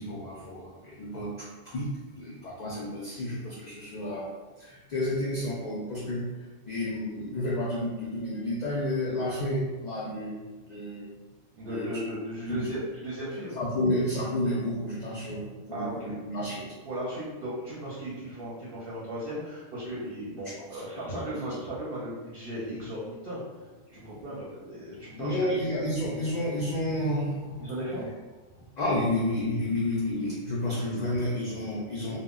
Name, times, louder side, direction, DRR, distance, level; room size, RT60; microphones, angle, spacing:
voice 1, 0.0-4.3 4.6-6.3 6.7-10.4 10.7-11.1 11.7-11.8 12.5-12.6 13.6-16.7 20.4-20.5 23.9-24.2 24.9-27.7 28.8-32.2, left 1 dB, 70° left, -5 dB, 0.4 m, -31 dB
voice 2, 11.6-13.6 15.7-16.2 16.9-23.4 23.9-25.6 27.6-28.1 30.7-30.8, right 1 dB, 60° right, -6 dB, 0.7 m, -36 dB
2.1 x 2.0 x 3.6 m, 1.2 s
omnidirectional pair, 1.3 m